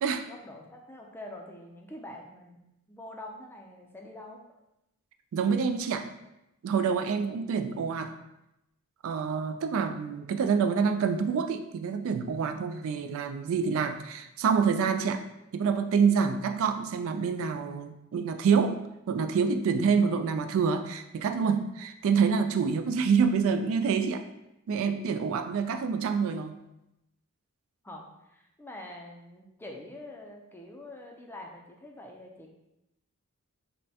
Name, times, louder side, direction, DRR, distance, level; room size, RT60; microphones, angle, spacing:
voice 1, 0.3-2.6 2.9-4.4 27.8-32.5, left 1 dB, 10° left, 0 dB, 0.4 m, -45 dB
voice 2, 5.3-6.1 6.6-8.2 9.0-15.2 15.5-24.2 24.7-26.6, right 6 dB, 65° right, 8 dB, 0.3 m, -27 dB
5.3 x 2.2 x 2.8 m, 0.88 s
head